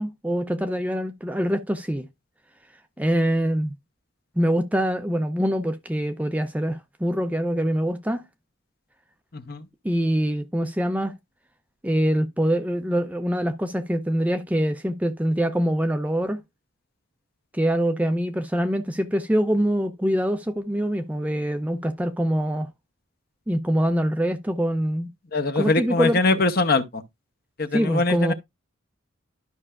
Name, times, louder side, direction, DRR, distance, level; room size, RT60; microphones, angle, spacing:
voice 1, 0.0-2.1 3.0-3.7 4.4-8.2 9.8-11.1 11.8-16.4 17.5-22.7 23.5-25.1 25.6-26.4 27.7-28.3, equal, 5° right, 0.4 m, -24 dB
voice 2, 9.3-9.7 25.3-27.0 27.6-28.3, left 3 dB, 45° left, 0.8 m, -22 dB
12.0 x 5.5 x 2.4 m
head